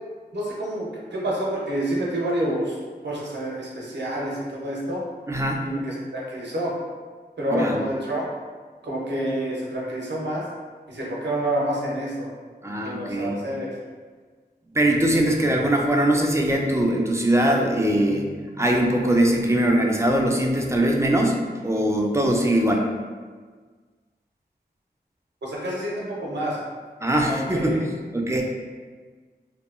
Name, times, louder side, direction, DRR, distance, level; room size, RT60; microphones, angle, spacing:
voice 1, 0.3-2.8 3.0-5.0 5.6-6.7 7.4-8.3 8.8-10.4 10.9-12.3 12.7-13.7 25.4-26.6 27.3-27.8, right 1 dB, 90° right, -4 dB, 0.6 m, -28 dB
voice 2, 5.3-5.7 7.5-7.8 12.6-13.4 14.7-22.9 27.0-27.8 28.1-28.4, right 1 dB, 15° right, 0 dB, 0.3 m, -21 dB
2.7 x 2.3 x 2.3 m, 1.5 s
wide cardioid pair, 60°, 18 cm